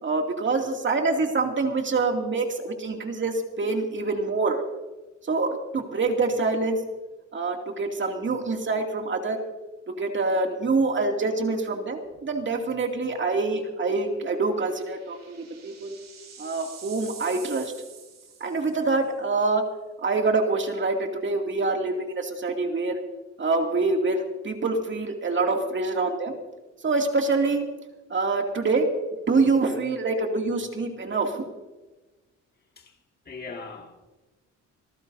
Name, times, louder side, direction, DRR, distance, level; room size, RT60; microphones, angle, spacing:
voice 1, 0.0-4.6 5.3-6.8 7.3-9.4 10.0-16.0 16.4-17.7 18.4-19.6 20.0-23.0 23.4-26.3 26.8-27.7 28.1-28.8 29.3-31.5, right 3 dB, 40° right, 2.6 m, -25 dB
sound 1, 12.1-12.4 12.8-12.9 14.3-19.0, right 6 dB, 60° right, 5.2 m, -46 dB
voice 2, 33.3-34.1, left 4 dB, 30° left, 2.2 m, -40 dB
26.0 x 14.0 x 2.7 m
cardioid pair, 90°, 30 cm